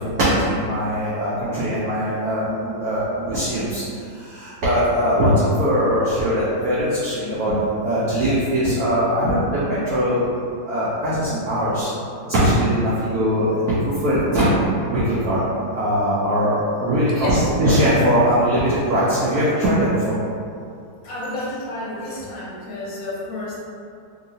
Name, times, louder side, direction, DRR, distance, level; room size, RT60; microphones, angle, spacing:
voice 1, 0.0-3.8 4.1-10.3 10.7-11.9 12.3-14.5 14.9-15.4 15.7-20.1, equal, 70° right, -9 dB, 0.9 m, -21 dB
voice 2, 17.1-17.5 21.0-23.6, left 2 dB, 60° left, -7 dB, 0.9 m, -30 dB
2.9 x 2.8 x 2.6 m, 2.4 s
omnidirectional pair, 2.0 m